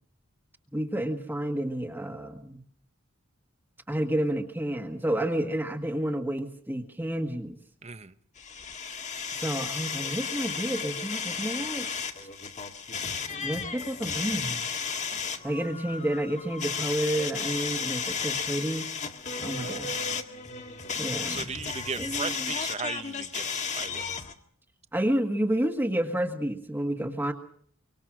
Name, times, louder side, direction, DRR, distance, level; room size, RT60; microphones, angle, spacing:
voice 1, 0.7-2.6 3.9-7.6 9.4-11.9 13.4-14.7 15.4-18.9 19.4-19.9 20.9-21.4 22.0-22.5 24.9-27.3, right 1 dB, 10° right, 3 dB, 1.6 m, -30 dB
voice 2, 7.8-8.1 15.1-15.4 19.6-19.8 21.3-24.0, right 5 dB, 30° right, 12 dB, 1.0 m, -37 dB
sound 1, 8.4-24.3, left 6 dB, 35° left, 1.9 m, -34 dB
25.0 x 24.5 x 6.2 m, 0.62 s
head